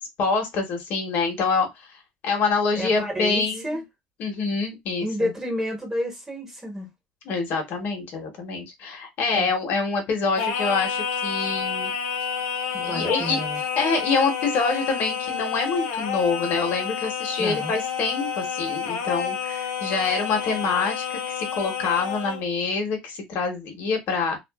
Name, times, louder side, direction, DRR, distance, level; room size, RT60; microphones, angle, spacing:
voice 1, 0.2-1.7 2.2-3.8 4.2-5.3 7.2-11.9 12.8-13.4 13.8-24.4, left 4 dB, 60° left, 1.1 m, -26 dB
voice 2, 2.7-3.8 5.0-6.9 9.3-9.5 12.7-13.6 17.4-17.7, equal, 15° right, 1.2 m, -30 dB
Singing, 10.4-22.4, left 7 dB, 85° left, 0.6 m, -29 dB
2.5 x 2.4 x 2.3 m
supercardioid pair, 105°, 4 cm